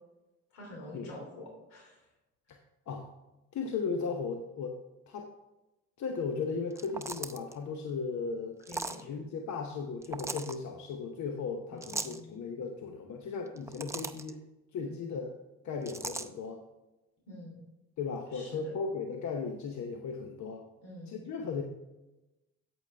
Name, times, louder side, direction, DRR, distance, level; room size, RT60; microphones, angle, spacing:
voice 1, 0.5-2.0 8.7-9.2 11.7-12.4 14.8-15.0 17.3-17.6 18.3-18.8 20.8-21.2, left 1 dB, 90° left, 0 dB, 3.0 m, -47 dB
voice 2, 3.5-4.7 5.1-5.3 6.0-8.6 9.0-14.4 14.7-15.3 15.6-16.6 18.0-20.6 21.1-21.6, left 5 dB, 65° left, 3 dB, 1.0 m, -36 dB
sound 1, 6.7-7.5 8.6-9.0 10.0-10.5 11.8-12.2 13.5-14.3 15.9-16.3, right 2 dB, 10° right, 0.6 m, -38 dB
8.4 x 8.2 x 3.4 m, 1.0 s
supercardioid pair, 60°, 31 cm